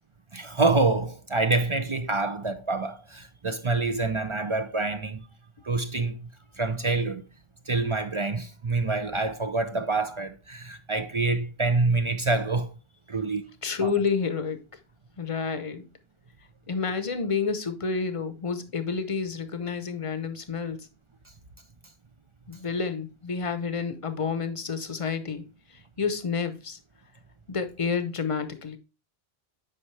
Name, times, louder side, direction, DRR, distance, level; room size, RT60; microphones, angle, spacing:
voice 1, 0.3-5.2 5.6-6.2 6.6-7.2 7.7-12.7 13.1-13.4 13.8-14.0, right 3 dB, 40° right, 0.5 m, -26 dB
voice 2, 13.6-14.6 15.2-15.8 16.7-20.9 22.5-25.4 25.7-26.8 27.5-28.8, left 5 dB, 35° left, 0.8 m, -29 dB
8.8 x 5.4 x 3.2 m
omnidirectional pair, 1.1 m